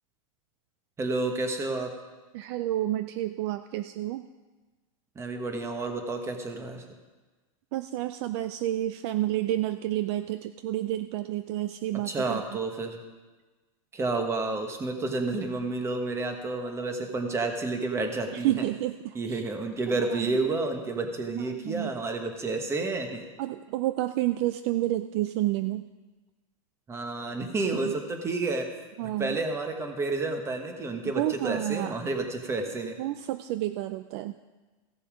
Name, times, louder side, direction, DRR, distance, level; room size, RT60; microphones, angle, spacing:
voice 1, 1.0-1.9 5.1-6.8 12.1-13.0 13.9-18.6 19.1-23.2 26.9-28.7 29.0-33.0, right 3 dB, 15° right, 5 dB, 1.3 m, -30 dB
voice 2, 2.3-4.3 7.7-12.4 18.4-19.4 19.9-20.4 21.4-21.9 23.4-25.9 27.8-27.9 29.0-29.4 31.0-31.9 33.0-34.4, right 14 dB, 50° right, 11 dB, 0.4 m, -30 dB
15.5 x 6.8 x 5.0 m, 1.3 s
supercardioid pair, 145°, 18 cm